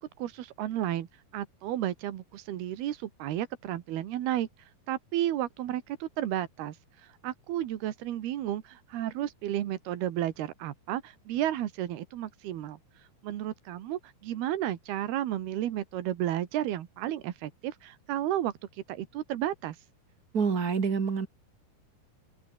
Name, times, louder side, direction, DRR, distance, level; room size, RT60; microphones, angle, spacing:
voice 1, 0.2-1.1 1.3-4.5 4.9-12.8 13.2-18.5 18.9-19.8, right 12 dB, 85° right, 3.6 m, -32 dB
voice 2, 20.3-21.3, right 5 dB, 35° right, 1.6 m, -27 dB
open air
omnidirectional pair, 4.4 m